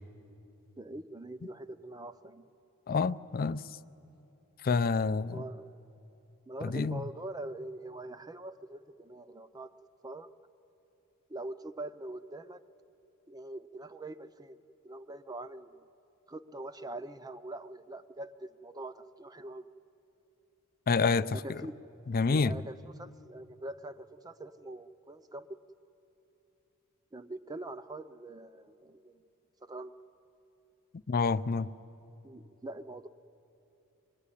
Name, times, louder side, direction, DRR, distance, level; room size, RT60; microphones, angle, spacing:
voice 1, 0.8-2.4 5.3-5.7 6.5-9.7 10.0-10.3 11.3-12.6 13.3-14.6 14.8-15.9 16.3-19.6 21.3-22.0 22.3-25.6 27.1-29.2 29.6-29.9 32.2-33.1, right 2 dB, 15° right, 0.6 m, -43 dB
voice 2, 2.9-3.6 4.6-5.4 6.6-7.0 20.9-21.6 22.1-22.5 31.1-31.7, left 4 dB, 45° left, 0.5 m, -28 dB
25.5 x 21.0 x 9.9 m
head